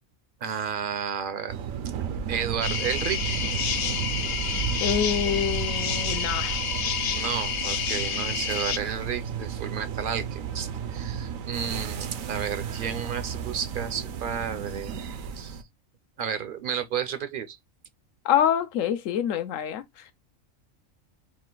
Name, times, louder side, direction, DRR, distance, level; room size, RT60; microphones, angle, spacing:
voice 1, 0.4-1.8 2.3-3.4 7.1-14.9 15.3-15.6 16.2-17.6, right 7 dB, 55° right, 0.6 m, -32 dB
sound 1, 1.5-15.6, right 7 dB, 80° right, 1.0 m, -33 dB
sound 2, 2.6-8.8, left 7 dB, 60° left, 0.7 m, -29 dB
voice 2, 4.8-6.6 18.2-20.1, left 9 dB, 80° left, 1.0 m, -26 dB
4.2 x 2.5 x 3.7 m
omnidirectional pair, 1.4 m